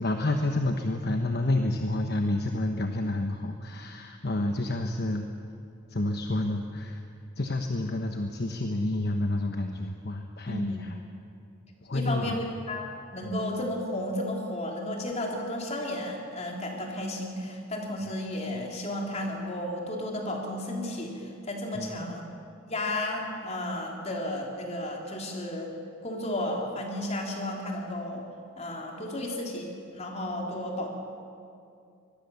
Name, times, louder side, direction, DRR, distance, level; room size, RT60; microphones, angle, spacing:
voice 1, 0.0-5.2 5.9-7.0 7.4-10.9 11.8-12.4 13.2-13.4 21.7-21.9, left 2 dB, 50° left, 4 dB, 1.1 m, -29 dB
voice 2, 10.5-10.8 11.9-22.2 22.7-25.7 26.0-28.3 28.6-30.9, left 1 dB, 30° left, 0 dB, 3.5 m, -33 dB
24.0 x 20.5 x 7.1 m, 2.5 s
head